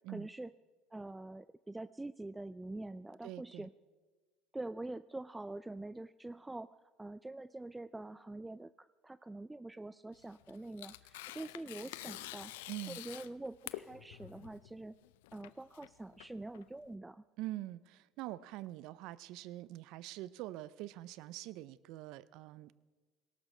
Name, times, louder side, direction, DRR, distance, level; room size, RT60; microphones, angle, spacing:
voice 1, 0.1-0.5 0.9-3.7 4.5-12.5 12.9-14.9 15.3-17.2, right 2 dB, 10° right, 15 dB, 0.3 m, -45 dB
voice 2, 3.2-3.7 12.7-13.0 17.4-22.7, right 16 dB, 65° right, 19 dB, 0.5 m, -44 dB
Tearing, 10.1-16.9, left 16 dB, 75° left, 0.5 m, -48 dB
18.5 x 17.0 x 3.3 m, 1.3 s
hypercardioid pair, 75°, 0 cm